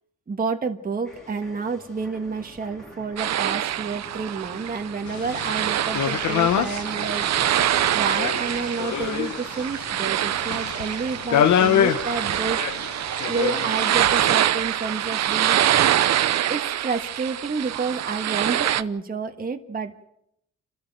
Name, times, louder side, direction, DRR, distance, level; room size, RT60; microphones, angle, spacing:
voice 1, 0.3-13.0 13.3-16.0 16.5-20.1, right 4 dB, 30° right, 4 dB, 1.6 m, -30 dB
sound 1, 1.0-16.4, right 1 dB, ahead, 3.7 m, -48 dB
sound 2, 3.2-18.8, right 11 dB, 60° right, 0.8 m, -25 dB
sound 3, 5.1-14.3, left 9 dB, 70° left, 1.1 m, -26 dB
29.5 x 13.0 x 7.6 m, 0.79 s
cardioid pair, 90°, 30 cm